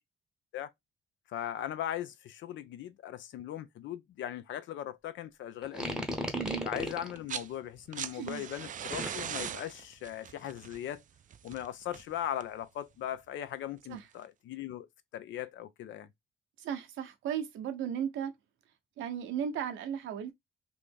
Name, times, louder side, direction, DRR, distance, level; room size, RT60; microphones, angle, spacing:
voice 1, 1.3-6.1 6.6-11.0 11.4-14.9 15.1-16.1, left 11 dB, 75° left, 0.6 m, -39 dB
sound 1, 5.6-7.2 8.9-9.4, equal, 5° right, 0.8 m, -35 dB
voice 2, 6.3-6.7 8.1-8.4 13.9-14.0 16.6-18.3 19.0-20.3, right 8 dB, 85° right, 0.8 m, -35 dB
sound 2, 7.0-7.5 7.8-12.6 13.9-14.0, right 9 dB, 40° right, 0.4 m, -40 dB
3.1 x 2.7 x 3.4 m
cardioid pair, 90°, 20 cm